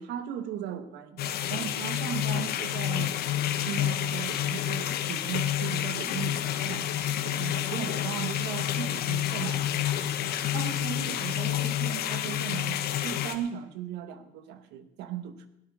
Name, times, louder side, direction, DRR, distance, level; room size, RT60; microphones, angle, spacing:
voice 1, 0.0-3.2 3.7-6.9 7.2-10.1 10.5-15.5, right 9 dB, 90° right, 10 dB, 1.4 m, -37 dB
sound 1, 1.2-13.3, left 11 dB, 70° left, 1.3 m, -29 dB
17.0 x 12.0 x 4.9 m, 0.82 s
cardioid pair, 110°, 17 cm